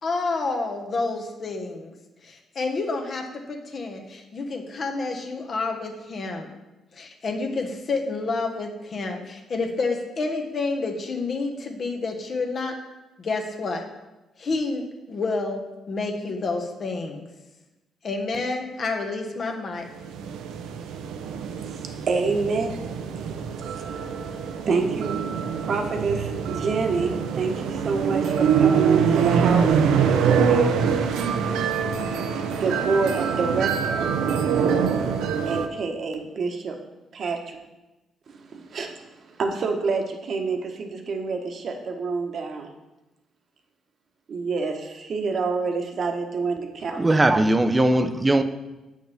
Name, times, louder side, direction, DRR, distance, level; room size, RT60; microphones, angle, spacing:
voice 1, 0.0-1.9 2.2-6.5 6.9-12.8 13.2-13.8 14.4-15.6 15.9-17.2 18.0-19.9, left 3 dB, 50° left, 1.2 m, -29 dB
sound 1, 20.0-35.7, right 7 dB, 90° right, 0.6 m, -24 dB
voice 2, 21.4-22.7 23.1-25.2 25.6-29.9 30.4-30.8 32.6-34.1 35.5-36.8 37.1-37.6 38.3-42.7 44.3-47.2, right 4 dB, 55° right, 1.1 m, -28 dB
voice 3, 47.0-48.4, right 1 dB, 20° right, 0.6 m, -19 dB
8.3 x 6.4 x 3.5 m
cardioid pair, 90°, 0 cm